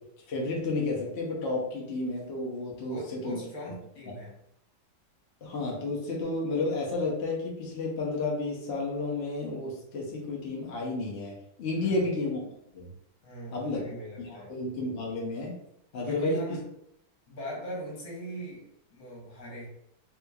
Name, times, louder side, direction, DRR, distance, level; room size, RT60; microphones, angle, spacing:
voice 1, 0.3-3.4 5.4-12.4 12.7-12.9 13.5-13.8 14.2-15.6 15.9-16.4, left 2 dB, 70° left, -3 dB, 0.6 m, -31 dB
voice 2, 2.8-4.3 11.8-12.1 13.2-14.5 16.0-16.6 17.3-19.7, right 1 dB, 55° left, -5 dB, 1.5 m, -40 dB
3.5 x 3.0 x 2.3 m, 0.78 s
omnidirectional pair, 2.2 m